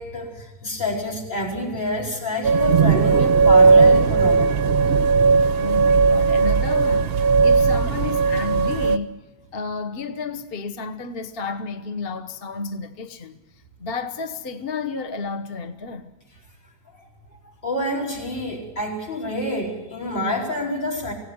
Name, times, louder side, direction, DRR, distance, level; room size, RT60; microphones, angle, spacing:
voice 1, 0.0-4.6 17.6-21.1, left 1 dB, 60° left, 5.4 m, -27 dB
sound 1, 2.4-9.0, right 4 dB, 50° right, 0.7 m, -17 dB
voice 2, 5.6-9.2 9.5-13.4 13.8-16.1, left 4 dB, 35° left, 1.0 m, -31 dB
24.5 x 17.0 x 9.6 m
omnidirectional pair, 2.3 m